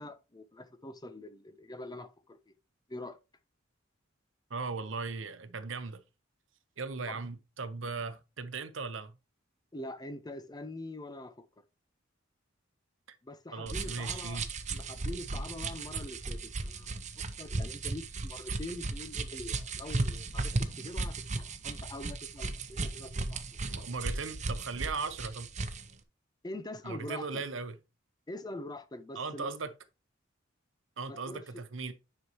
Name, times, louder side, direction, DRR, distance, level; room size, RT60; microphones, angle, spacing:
voice 1, 0.0-2.5 2.9-3.2 7.1-7.2 9.7-11.5 13.2-14.4 14.7-17.0 17.4-23.9 26.4-27.4 28.3-29.5 31.1-31.4, left 1 dB, 20° left, 0.7 m, -44 dB
voice 2, 4.5-6.0 6.8-9.2 13.1-13.2 13.5-14.5 23.6-25.5 26.8-27.8 29.1-29.7 31.0-31.9, right 4 dB, 70° right, 0.9 m, -38 dB
sound 1, 13.7-25.9, right 3 dB, 35° right, 0.8 m, -36 dB
9.6 x 5.5 x 3.0 m
head